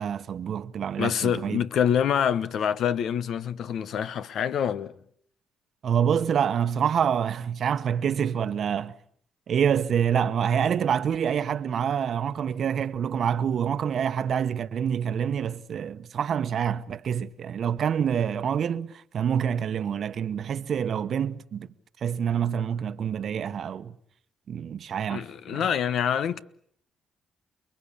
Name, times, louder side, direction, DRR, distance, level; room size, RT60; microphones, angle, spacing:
voice 1, 0.0-1.6 5.8-8.9 9.5-21.7 22.0-23.9 24.5-25.7, right 8 dB, 60° right, 1.1 m, -27 dB
voice 2, 1.0-4.9 25.1-26.4, left 8 dB, 70° left, 1.1 m, -26 dB
29.5 x 21.0 x 8.6 m
cardioid pair, 90°, 0 cm